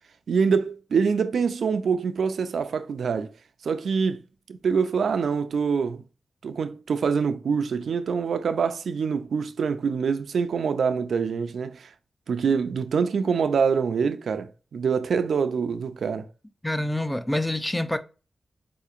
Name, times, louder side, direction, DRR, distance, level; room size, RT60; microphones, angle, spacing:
voice 1, 0.3-3.3 3.6-4.2 4.5-6.0 6.4-11.9 12.3-16.3, right 6 dB, 90° right, 0.4 m, -25 dB
voice 2, 16.6-18.0, left 1 dB, 10° left, 0.5 m, -26 dB
4.2 x 2.8 x 2.4 m
cardioid pair, 60°, 0 cm